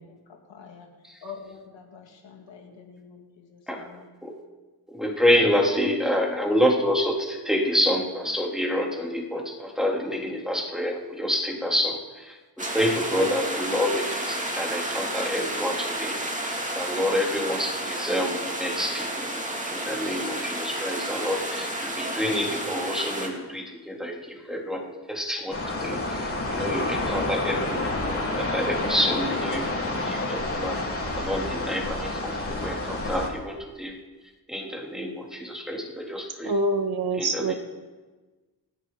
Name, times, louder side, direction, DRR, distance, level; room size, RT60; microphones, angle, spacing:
voice 1, 0.0-0.9 1.2-4.2, left 6 dB, 85° left, 2 dB, 2.4 m, -46 dB
voice 2, 4.9-16.2 16.5-30.8 31.1-34.0 34.5-36.5 37.2-37.5, equal, ahead, -1 dB, 3.4 m, -28 dB
sound 1, 12.6-23.3, right 1 dB, 15° right, 2.7 m, -31 dB
sound 2, 25.5-33.3, left 2 dB, 30° left, 3.9 m, -29 dB
voice 3, 36.4-37.5, right 2 dB, 60° right, 6 dB, 1.8 m, -25 dB
27.0 x 10.5 x 4.1 m, 1.3 s
cardioid pair, 85°, 43 cm